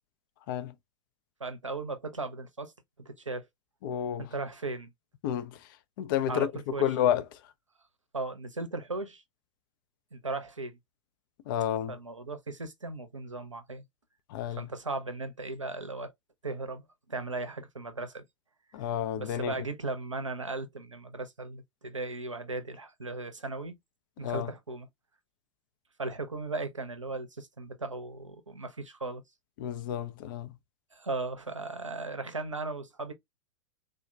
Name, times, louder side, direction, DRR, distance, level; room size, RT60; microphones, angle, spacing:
voice 1, 1.4-2.7 3.1-3.5 4.2-4.9 6.3-6.9 8.1-9.2 10.1-10.8 11.9-13.8 14.5-16.1 16.4-16.8 17.1-18.3 18.8-18.9 19.2-23.8 24.2-24.9 26.0-29.2 30.9-33.1, right 3 dB, 85° right, 0.6 m, -37 dB
voice 2, 3.8-4.3 5.2-5.6 6.0-6.5 6.8-7.2 11.5-12.0 14.3-14.7 18.7-19.6 24.2-24.5 29.6-30.5, left 10 dB, 45° left, 0.4 m, -30 dB
3.5 x 2.1 x 2.2 m
figure-of-eight pair, 90°, 16 cm